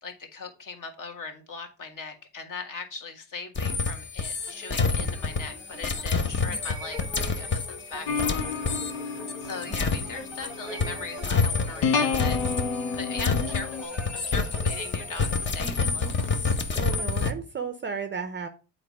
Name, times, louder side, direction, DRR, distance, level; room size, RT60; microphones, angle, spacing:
voice 1, 0.0-8.4 8.7-9.1 9.4-12.4 13.0-16.5, left 4 dB, 40° left, 5 dB, 1.5 m, -39 dB
sound 1, 3.5-10.5 10.8-17.3, left 4 dB, 25° left, 0.7 m, -28 dB
sound 2, 4.4-17.2, right 1 dB, 5° right, 1.0 m, -44 dB
sound 3, 8.1-13.8, left 5 dB, 80° left, 1.1 m, -31 dB
voice 2, 16.7-18.5, right 6 dB, 25° right, 9 dB, 0.6 m, -33 dB
7.5 x 4.2 x 4.8 m, 0.34 s
cardioid pair, 105°, 48 cm